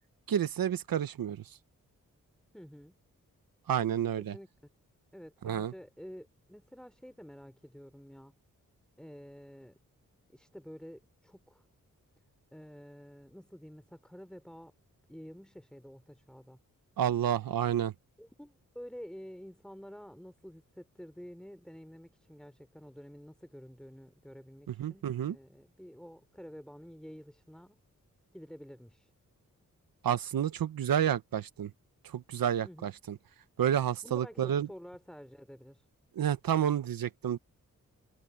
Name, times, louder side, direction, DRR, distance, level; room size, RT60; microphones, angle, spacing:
voice 1, 0.3-1.4 3.7-4.3 5.4-5.7 17.0-17.9 24.7-25.4 30.0-31.7 32.1-33.2 33.6-34.7 36.1-37.4, right 9 dB, 80° right, 1.1 m, -30 dB
voice 2, 2.5-3.0 4.2-4.5 5.1-8.3 9.0-9.8 10.3-11.6 12.5-14.7 15.1-16.6 18.2-27.8 28.3-29.1 32.6-32.9 34.0-35.8, equal, ahead, 4.1 m, -49 dB
cardioid pair, 50°, 34 cm